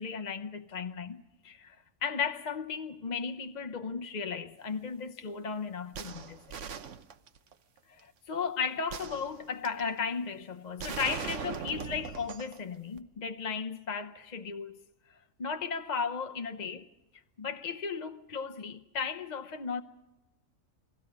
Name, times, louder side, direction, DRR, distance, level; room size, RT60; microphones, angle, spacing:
voice 1, 0.0-6.4 7.9-14.8 15.4-16.9 17.4-19.8, left 5 dB, 40° left, 0.8 m, -35 dB
sound 1, 5.9-7.5 8.9-9.9 10.8-12.6 13.0-13.1, right 7 dB, 65° right, 1.2 m, -40 dB
29.5 x 21.0 x 5.1 m
omnidirectional pair, 1.4 m